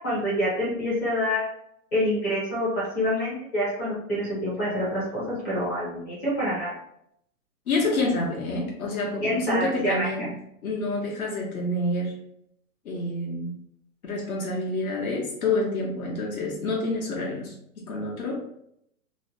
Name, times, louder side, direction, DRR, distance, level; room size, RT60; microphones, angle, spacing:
voice 1, 0.0-1.4 1.9-6.7 9.0-10.1, equal, 10° left, -8 dB, 0.4 m, -27 dB
voice 2, 7.7-10.3 10.6-12.1 12.8-13.5 14.0-18.4, left 2 dB, 70° left, -2 dB, 0.9 m, -28 dB
2.9 x 2.1 x 2.7 m, 0.72 s
hypercardioid pair, 145°, 44 cm